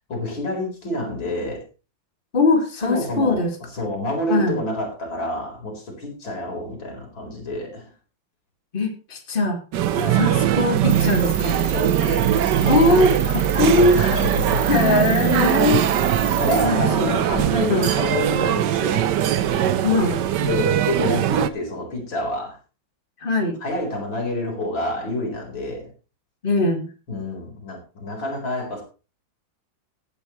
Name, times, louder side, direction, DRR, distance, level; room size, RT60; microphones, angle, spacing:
voice 1, 0.1-1.6 2.8-3.4 3.7-7.9 9.9-10.3 11.4-12.3 13.9-15.2 16.4-19.2 20.4-22.6 23.6-25.9 27.1-28.8, left 1 dB, 90° left, 1 dB, 5.3 m, -28 dB
voice 2, 2.3-3.5 4.3-4.6 8.7-9.6 10.1-11.6 12.6-14.0 14.7-15.9 16.6-17.3 17.7-17.9 19.8-20.2 23.2-23.6 26.4-26.9, left 2 dB, 30° left, 3 dB, 2.3 m, -21 dB
sound 1, 9.7-21.5, right 11 dB, 70° right, 1.4 m, -21 dB
sound 2, 10.9-16.7, right 5 dB, 25° right, 1.3 m, -28 dB
15.5 x 10.5 x 3.1 m, 0.33 s
omnidirectional pair, 2.0 m